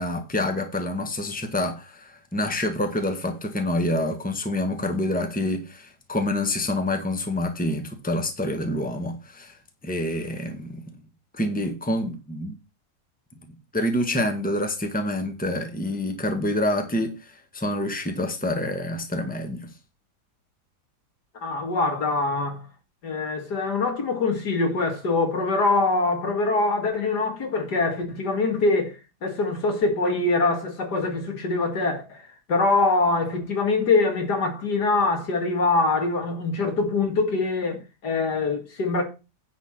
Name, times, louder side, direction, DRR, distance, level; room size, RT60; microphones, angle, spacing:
voice 1, 0.0-9.5 9.8-10.8 11.4-12.5 13.7-19.7, left 1 dB, 5° left, 1.5 m, -27 dB
voice 2, 21.4-22.6 23.0-28.9 29.2-32.2 32.5-39.0, left 3 dB, 75° left, 2.8 m, -24 dB
10.5 x 4.3 x 7.4 m
omnidirectional pair, 1.8 m